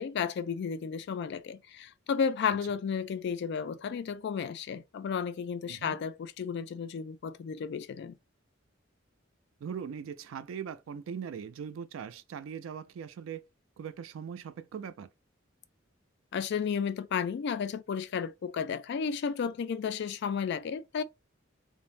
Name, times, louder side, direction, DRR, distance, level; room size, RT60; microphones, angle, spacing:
voice 1, 0.0-8.1 16.3-21.0, left 6 dB, 60° left, 0.3 m, -33 dB
voice 2, 5.7-6.0 9.6-13.4 13.8-15.1, right 7 dB, 85° right, 0.3 m, -40 dB
2.5 x 2.0 x 3.1 m
head